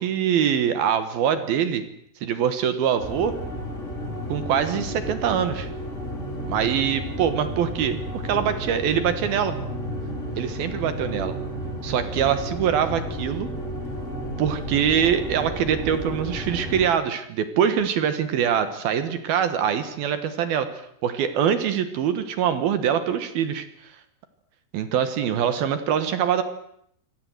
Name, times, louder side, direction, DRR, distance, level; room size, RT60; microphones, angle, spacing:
voice 1, 0.0-1.8 2.2-3.3 4.3-5.7 6.5-9.5 10.4-11.3 11.8-13.5 14.4-20.7 21.0-23.7 24.7-26.4, right 8 dB, 65° right, 10 dB, 2.6 m, -23 dB
sound 1, 3.0-16.9, equal, 15° left, 3.6 m, -32 dB
26.0 x 18.0 x 7.9 m, 0.71 s
omnidirectional pair, 5.8 m